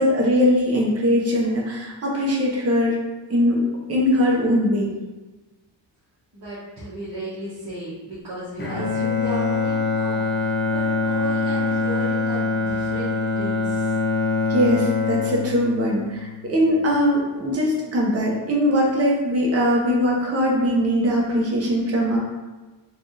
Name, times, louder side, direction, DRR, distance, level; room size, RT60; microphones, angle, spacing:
voice 1, 0.0-3.0 3.3-4.9 14.5-22.2, equal, 35° right, -3 dB, 0.7 m, -21 dB
voice 2, 6.3-13.9, right 1 dB, 50° right, -11 dB, 1.1 m, -34 dB
Bowed string instrument, 8.6-16.8, left 4 dB, 25° left, 0.5 m, -24 dB
3.4 x 2.4 x 3.9 m, 1.2 s
wide cardioid pair, 180°, 44 cm